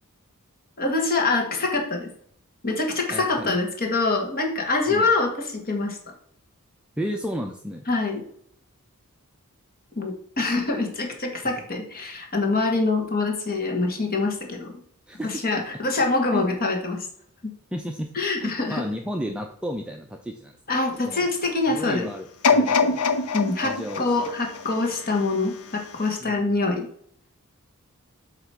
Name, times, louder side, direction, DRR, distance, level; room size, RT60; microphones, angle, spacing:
voice 1, 0.8-2.1 2.6-6.0 7.9-8.2 9.9-14.7 15.2-17.1 18.1-18.8 20.7-22.1 23.3-26.9, left 3 dB, 45° left, 2 dB, 1.6 m, -25 dB
voice 2, 3.1-3.6 4.9-5.1 7.0-7.8 15.1-15.6 16.3-16.5 17.7-18.1 18.4-20.6 21.1-21.3 21.7-23.0 23.6-24.2 26.2-26.5, equal, 5° right, 2 dB, 0.4 m, -32 dB
sound 1, 22.4-25.5 26.1-26.2, left 4 dB, 90° left, 0.8 m, -24 dB
7.8 x 3.0 x 5.7 m, 0.66 s
head